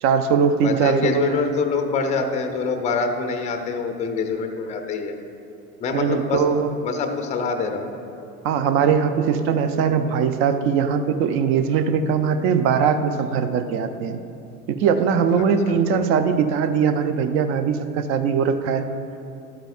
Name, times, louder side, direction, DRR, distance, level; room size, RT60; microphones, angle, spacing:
voice 1, 0.0-1.5 5.9-6.8 8.4-14.2 14.7-18.8, right 6 dB, 30° right, 9 dB, 0.4 m, -21 dB
voice 2, 0.6-5.1 5.8-6.4 6.8-7.9 15.4-16.0, left 4 dB, 15° left, 5 dB, 0.6 m, -25 dB
12.0 x 8.8 x 2.4 m, 2.7 s
figure-of-eight pair, 75°, 44 cm